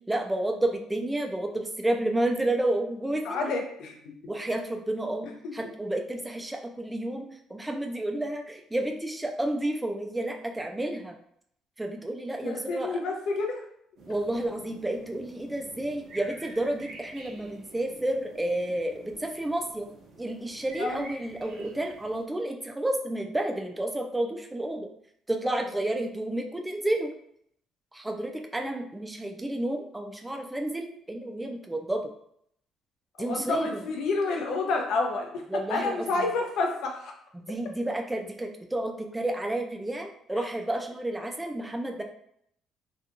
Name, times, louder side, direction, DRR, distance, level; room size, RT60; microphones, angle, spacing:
voice 1, 0.1-3.5 4.3-11.2 11.8-13.0 14.1-19.9 20.2-24.9 25.3-27.1 27.9-32.1 33.2-33.7 35.5-36.1 37.3-42.0, right 1 dB, 10° right, 3 dB, 0.3 m, -31 dB
voice 2, 3.2-4.0 12.4-13.6 20.8-21.1 33.2-35.4 35.7-37.1 40.3-40.5, left 3 dB, 75° left, 2 dB, 0.5 m, -29 dB
sound 1, 14.0-22.3, right 2 dB, 65° right, 0.5 m, -49 dB
2.8 x 2.2 x 2.5 m, 0.69 s
cardioid pair, 145°, 0 cm